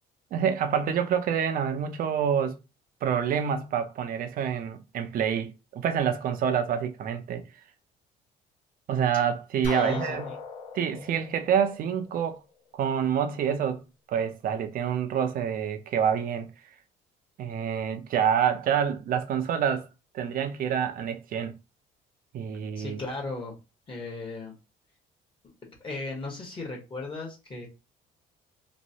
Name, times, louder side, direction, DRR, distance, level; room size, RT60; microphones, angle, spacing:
voice 1, 0.3-2.6 3.0-7.4 8.9-10.3 10.7-12.4 12.7-13.8 14.1-16.5 17.4-19.9 20.1-21.5 22.3-23.0, right 8 dB, 55° right, 0.6 m, -27 dB
sound 1, 9.6-12.4, left 4 dB, 85° left, 0.8 m, -37 dB
voice 2, 9.7-10.4 22.8-23.5 23.9-24.5 25.8-27.7, left 2 dB, 30° left, 1.2 m, -36 dB
3.1 x 2.5 x 2.7 m
cardioid pair, 110°, 17 cm